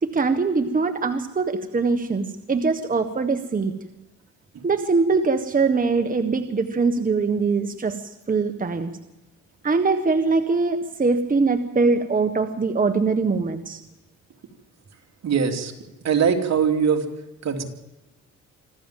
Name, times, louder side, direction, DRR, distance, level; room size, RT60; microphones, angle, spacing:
voice 1, 0.0-3.7 4.6-8.9 9.6-13.8, right 4 dB, 30° right, 8 dB, 1.5 m, -22 dB
voice 2, 15.2-15.7 16.0-17.0 17.4-17.6, right 7 dB, 60° right, 4 dB, 3.0 m, -21 dB
26.0 x 14.5 x 7.6 m, 1.0 s
cardioid pair, 90°, 30 cm